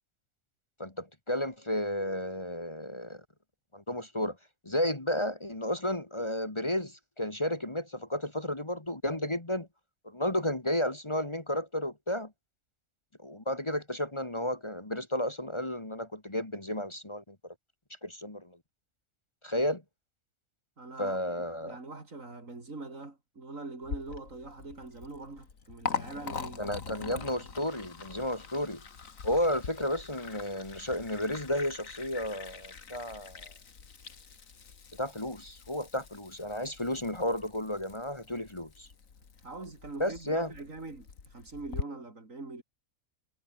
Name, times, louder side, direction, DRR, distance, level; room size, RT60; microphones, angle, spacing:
voice 1, 0.8-3.2 3.7-4.4 4.7-9.7 10.0-12.3 13.2-17.4 18.0-18.6 19.4-19.8 21.0-21.8 26.6-28.8 29.2-33.5 34.9-38.9 40.0-40.5, left 1 dB, 20° left, 1.9 m, -32 dB
voice 2, 20.8-27.3 39.4-42.6, right 3 dB, 80° right, 4.2 m, -43 dB
Liquid, 23.8-41.8, left 5 dB, 85° left, 2.2 m, -43 dB
omnidirectional pair, 1.4 m